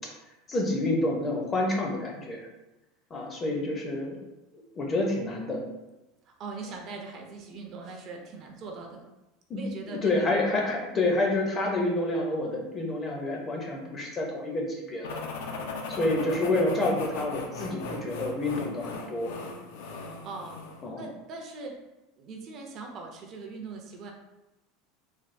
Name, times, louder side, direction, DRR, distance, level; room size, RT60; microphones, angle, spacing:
voice 1, 0.5-2.4 3.1-4.2 4.8-5.6 9.5-9.6 9.9-15.2 15.9-19.3 20.8-21.0, left 2 dB, 20° left, 0 dB, 0.5 m, -28 dB
voice 2, 6.2-9.0 9.6-10.3 20.2-20.6 21.0-21.8 22.2-24.1, right 3 dB, 35° right, 1 dB, 0.4 m, -41 dB
sound 1, 15.0-20.9, left 3 dB, 85° left, 0.4 m, -38 dB
3.3 x 2.2 x 2.5 m, 0.99 s
supercardioid pair, 165°, 0 cm